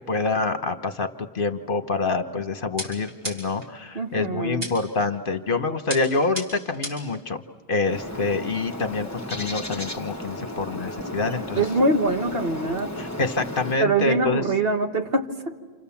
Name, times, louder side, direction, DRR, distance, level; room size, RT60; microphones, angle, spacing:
voice 1, 0.1-7.4 7.7-11.7 13.0-14.4, left 3 dB, 50° left, 8 dB, 1.3 m, -26 dB
sound 1, 2.8-3.7 4.6-5.1 5.9-7.2, right 1 dB, 80° right, 6.0 m, -34 dB
voice 2, 4.0-4.7 11.6-12.9 13.8-15.6, right 2 dB, 60° right, 4 dB, 1.8 m, -24 dB
Bird, 7.8-13.8, left 1 dB, 15° left, 1.3 m, -34 dB
29.5 x 28.0 x 7.2 m, 1.5 s
omnidirectional pair, 1.1 m